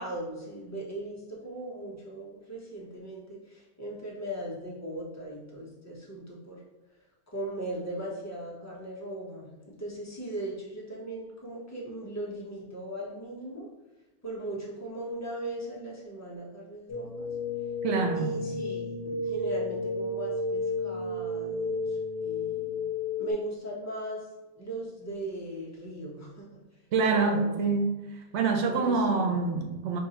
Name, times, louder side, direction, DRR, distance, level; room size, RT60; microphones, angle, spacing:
voice 1, 0.0-6.6 7.3-13.7 14.2-17.3 18.2-22.9 23.2-24.2 24.6-26.5 27.1-27.8 28.7-29.4, right 1 dB, 15° left, -5 dB, 0.8 m, -38 dB
sound 1, 16.9-23.3, left 2 dB, 80° left, 1.0 m, -32 dB
voice 2, 17.8-18.4 26.9-28.0 28.3-30.0, right 4 dB, 90° right, 4 dB, 0.9 m, -26 dB
4.6 x 2.6 x 2.8 m, 1.0 s
omnidirectional pair, 1.1 m